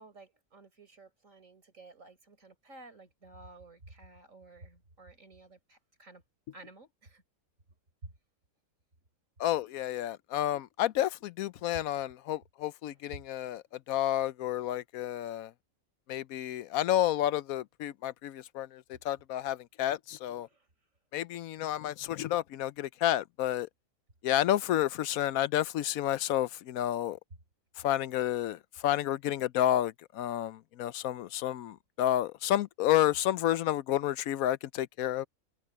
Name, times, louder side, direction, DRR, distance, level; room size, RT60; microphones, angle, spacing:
voice 1, 0.0-6.2 6.5-7.2 8.0-8.1 12.9-13.2 20.5-20.7, right 2 dB, 65° right, 5.0 m, -52 dB
voice 2, 9.4-15.5 16.1-20.5 21.1-23.7 24.2-27.2 27.8-35.3, left 12 dB, 85° left, 1.1 m, -30 dB
omnidirectional pair, 1.5 m